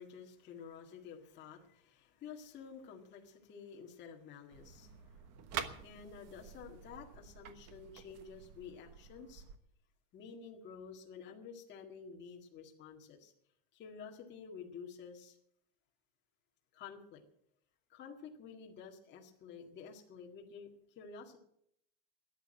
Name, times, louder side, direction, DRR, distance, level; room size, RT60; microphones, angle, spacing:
voice 1, 0.0-5.3 5.8-9.4 10.1-13.3 13.7-15.4 16.7-17.2 17.9-20.7 21.0-21.4, left 6 dB, 25° left, 0 dB, 1.9 m, -51 dB
sound 1, 4.5-9.6, right 8 dB, 35° right, 1.2 m, -47 dB
13.5 x 9.6 x 8.9 m, 0.72 s
supercardioid pair, 170°, 42 cm